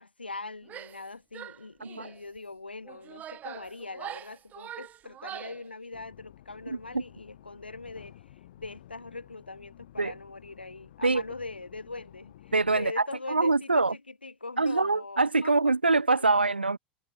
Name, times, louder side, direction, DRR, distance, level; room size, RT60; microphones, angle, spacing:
voice 1, 0.0-8.2 8.6-15.6 16.2-16.3, left 3 dB, 80° left, 5.2 m, -41 dB
Female speech woman speaking / Yell, 0.6-1.1 1.3-2.2 2.8-5.7, right 11 dB, 30° right, 0.7 m, -43 dB
sound 1, 5.9-12.9, left 13 dB, 60° left, 2.1 m, -53 dB
voice 2, 12.5-13.9 14.6-16.8, right 3 dB, 85° right, 0.5 m, -24 dB
figure-of-eight pair, 80°, 5 cm